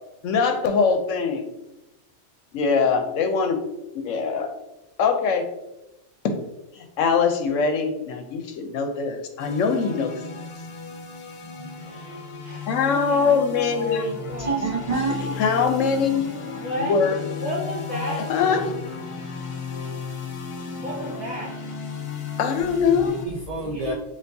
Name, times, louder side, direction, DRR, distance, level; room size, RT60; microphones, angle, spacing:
voice 1, 0.2-1.5 2.5-3.6 3.9-4.5 5.0-5.4 6.2-6.3 6.8-10.1 12.7-14.1 15.4-16.3 16.8-17.1 17.9-18.7 22.4-23.1, left 5 dB, 85° left, 5 dB, 1.0 m, -22 dB
sound 1, 9.4-23.3, left 5 dB, 55° left, 0.3 m, -35 dB
voice 2, 11.8-14.5 16.6-16.9 17.4-18.3 20.8-21.6 23.6-23.9, equal, 35° right, -5 dB, 1.6 m, -33 dB
voice 3, 14.3-15.4 22.9-23.9, right 3 dB, 65° right, -1 dB, 0.3 m, -28 dB
6.8 x 2.8 x 2.6 m, 0.94 s
omnidirectional pair, 1.3 m